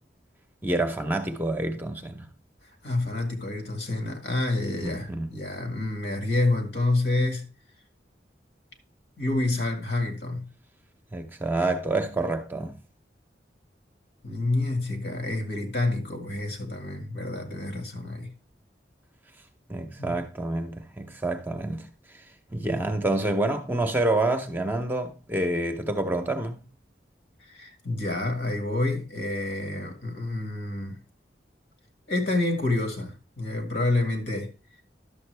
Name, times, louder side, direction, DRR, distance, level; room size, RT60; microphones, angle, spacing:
voice 1, 0.6-2.3 4.8-5.3 11.1-12.7 19.7-22.2 22.5-26.6, right 2 dB, 10° right, 0.7 m, -28 dB
voice 2, 2.8-7.5 9.2-10.5 14.2-18.3 20.0-20.2 27.4-31.0 32.1-34.5, left 2 dB, 75° left, 2.0 m, -28 dB
11.0 x 7.0 x 3.3 m
head